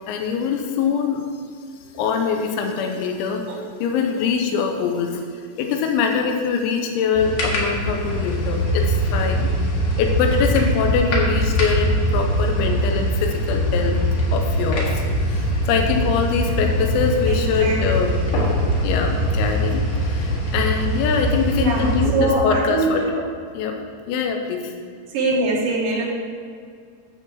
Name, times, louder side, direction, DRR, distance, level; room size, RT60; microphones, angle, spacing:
voice 1, 0.1-1.2 2.0-3.5 3.8-5.2 5.6-9.5 10.0-14.0 14.3-14.9 15.3-18.2 18.8-23.0 23.6-23.8 24.1-24.7, left 6 dB, 90° left, 3 dB, 3.6 m, -23 dB
sound 1, 7.1-22.1, equal, 55° left, 2.7 m, -22 dB
voice 2, 17.3-17.8 21.6-23.2 25.1-26.1, right 2 dB, 85° right, -5 dB, 1.9 m, -23 dB
10.5 x 5.5 x 7.2 m, 2.1 s
omnidirectional pair, 6.0 m